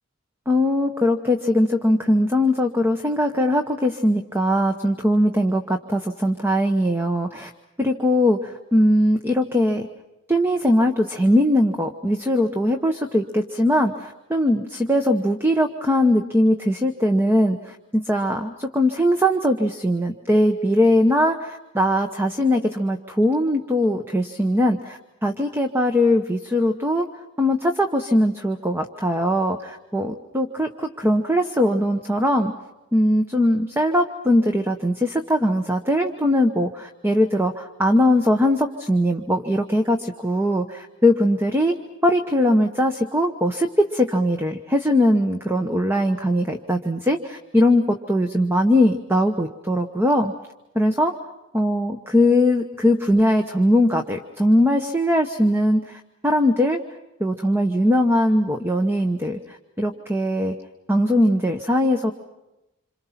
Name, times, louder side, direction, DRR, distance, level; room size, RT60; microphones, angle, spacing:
voice 1, 0.5-7.5 7.8-9.9 10.3-27.1 27.4-32.5 32.9-41.8 42.0-50.3 50.7-51.1 51.5-56.8 57.2-60.5 60.9-62.1, left 1 dB, 10° right, 5 dB, 1.0 m, -20 dB
27.5 x 26.5 x 5.8 m, 0.94 s
head